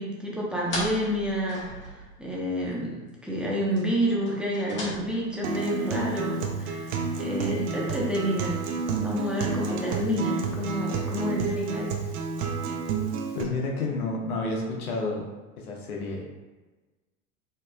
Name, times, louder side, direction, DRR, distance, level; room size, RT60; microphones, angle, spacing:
voice 1, 0.0-8.6 9.0-11.9, equal, ahead, -5 dB, 0.9 m, -29 dB
sound 1, 0.6-2.4 2.7-2.8 3.1-3.2 3.7-6.7, left 1 dB, 25° left, 1.3 m, -38 dB
Acoustic guitar, 5.4-13.4, right 4 dB, 40° right, 0.6 m, -30 dB
voice 2, 13.3-15.3 15.6-16.2, left 2 dB, 75° left, 0 dB, 0.9 m, -30 dB
4.3 x 2.9 x 2.3 m, 1.2 s
figure-of-eight pair, 80°, 45 cm